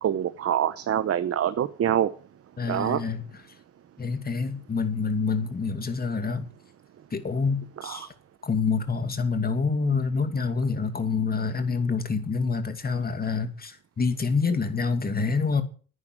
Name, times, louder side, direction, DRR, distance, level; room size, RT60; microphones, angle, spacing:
voice 1, 0.0-2.1 2.7-3.0 7.8-8.1, right 10 dB, 50° right, 1.0 m, -25 dB
voice 2, 2.6-3.2 4.0-6.5 7.1-8.1 8.4-15.6, left 4 dB, 30° left, 2.4 m, -27 dB
10.5 x 9.7 x 7.8 m
cardioid pair, 90°, 30 cm